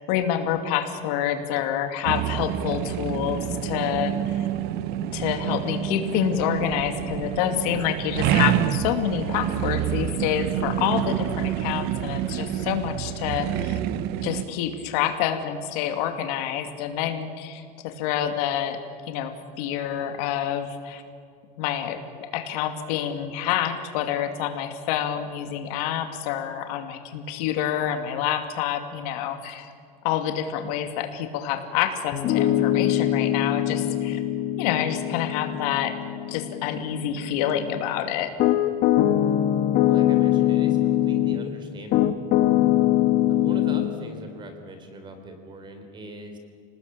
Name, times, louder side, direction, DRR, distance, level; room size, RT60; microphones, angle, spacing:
voice 1, 0.1-4.5 5.1-13.8 14.2-18.8 19.1-21.0 21.6-29.7 30.0-34.2 34.6-35.9 36.3-38.3, left 10 dB, 65° left, 7 dB, 2.6 m, -27 dB
sound 1, 2.1-14.4, right 11 dB, 50° right, 1.1 m, -27 dB
Piano, 32.1-41.5 41.9-43.9, left 12 dB, 45° left, 1.5 m, -23 dB
voice 2, 39.9-42.2 43.3-46.4, right 1 dB, 20° right, 6 dB, 3.7 m, -41 dB
29.0 x 19.0 x 8.7 m, 2.3 s
supercardioid pair, 160°, 21 cm